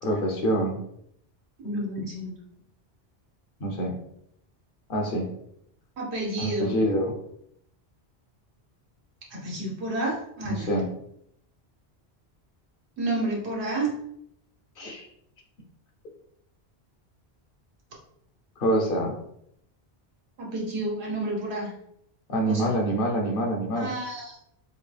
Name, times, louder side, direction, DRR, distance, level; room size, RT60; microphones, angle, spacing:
voice 1, 0.0-0.8 3.6-3.9 4.9-5.3 6.4-7.2 10.4-10.9 14.8-15.1 18.6-19.1 22.3-23.9, right 1 dB, 60° left, 0 dB, 0.9 m, -26 dB
voice 2, 1.6-2.3 6.0-6.8 9.3-10.7 13.0-13.9 20.4-21.7 22.5-22.7 23.8-24.4, right 2 dB, 80° right, -3 dB, 1.4 m, -30 dB
4.4 x 2.2 x 3.3 m, 0.73 s
omnidirectional pair, 1.1 m